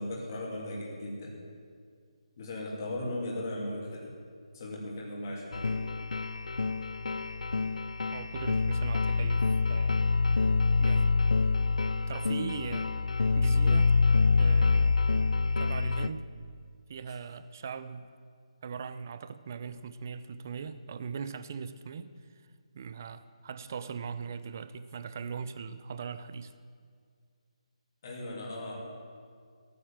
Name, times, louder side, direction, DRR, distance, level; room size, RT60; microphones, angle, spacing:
voice 1, 0.0-1.4 2.4-4.1 4.5-5.8 28.0-28.7, left 1 dB, 30° left, -4 dB, 2.6 m, -37 dB
sound 1, 5.5-16.1, left 4 dB, 85° left, 0.6 m, -26 dB
voice 2, 8.1-10.0 10.4-11.1 12.1-12.9 13.4-13.9 14.4-15.0 15.6-16.3 16.9-18.1 18.6-22.1 22.7-26.5, right 6 dB, 25° right, 13 dB, 0.5 m, -40 dB
16.0 x 9.4 x 7.3 m, 2.1 s
hypercardioid pair, 175°, 4 cm